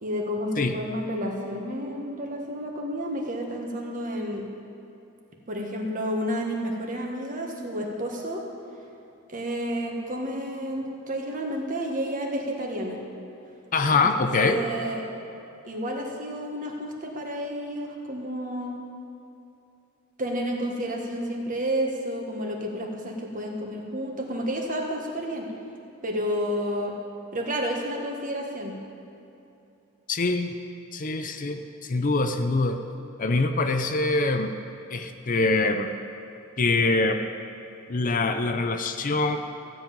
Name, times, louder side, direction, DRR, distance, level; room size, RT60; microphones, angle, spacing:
voice 1, 0.0-4.4 5.5-8.4 9.3-13.0 13.9-15.0 15.7-18.7 20.2-25.5 26.0-26.9 27.3-28.7, equal, 40° right, 1 dB, 1.5 m, -30 dB
voice 2, 13.7-14.6 30.1-30.5 30.9-32.8 33.2-34.5 34.9-35.9 36.6-37.2 37.9-39.4, left 3 dB, 40° left, 7 dB, 0.6 m, -24 dB
15.0 x 5.6 x 8.7 m, 2.9 s
head